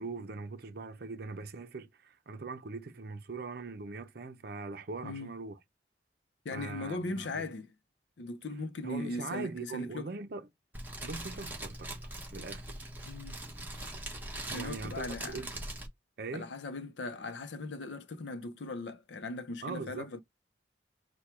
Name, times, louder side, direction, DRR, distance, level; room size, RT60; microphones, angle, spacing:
voice 1, 0.0-5.6 6.5-7.5 8.8-10.5 11.0-11.9 12.3-12.9 14.5-15.5 16.2-16.5 19.6-20.1, right 3 dB, 60° right, 0.6 m, -41 dB
voice 2, 6.4-7.7 8.2-10.1 13.0-13.4 14.5-15.5 16.3-20.2, left 2 dB, 80° left, 0.6 m, -39 dB
Fire, 10.7-15.9, right 1 dB, 10° right, 1.1 m, -42 dB
4.4 x 2.3 x 4.6 m
head